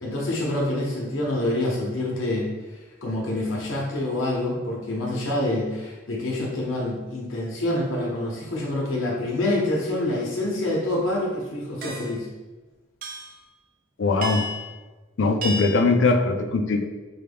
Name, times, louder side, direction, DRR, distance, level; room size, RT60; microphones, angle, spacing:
voice 1, 0.0-2.5 3.0-12.3, left 1 dB, 80° left, -4 dB, 0.9 m, -26 dB
sound 1, 11.8-12.2 13.0-13.4 14.2-14.7 15.4-15.9, right 1 dB, 45° right, 0.4 m, -32 dB
voice 2, 14.0-14.5 15.2-16.8, left 3 dB, 65° left, 6 dB, 0.4 m, -21 dB
4.5 x 2.2 x 3.4 m, 1.2 s
head